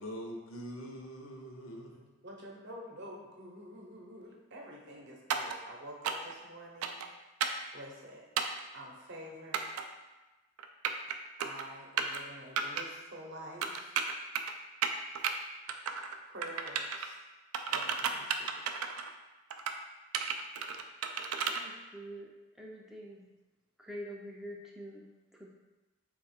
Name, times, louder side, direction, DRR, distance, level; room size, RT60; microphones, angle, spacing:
voice 1, 0.0-2.1, equal, 75° left, 0 dB, 0.7 m, -43 dB
voice 2, 2.2-7.0 7.7-8.3 8.7-9.9 11.4-14.0 16.2-17.2 17.7-19.0, right 1 dB, 55° right, -1 dB, 0.7 m, -48 dB
sound 1, 5.3-5.6 6.0-6.3 6.8-7.1 7.4-7.6 8.4-8.6 9.5-9.8 10.6-11.1 11.4-11.6 12.0-12.2 12.6-12.8 13.6-14.5 14.8-15.3 15.7-16.2 16.4-17.1 17.5-19.1 19.5-19.8 20.1-21.6, right 7 dB, 90° right, 0.3 m, -33 dB
voice 3, 21.5-22.3 22.6-23.3 23.8-25.0 25.3-25.5, equal, ahead, -3 dB, 0.3 m, -45 dB
4.0 x 2.3 x 4.2 m, 1.1 s
head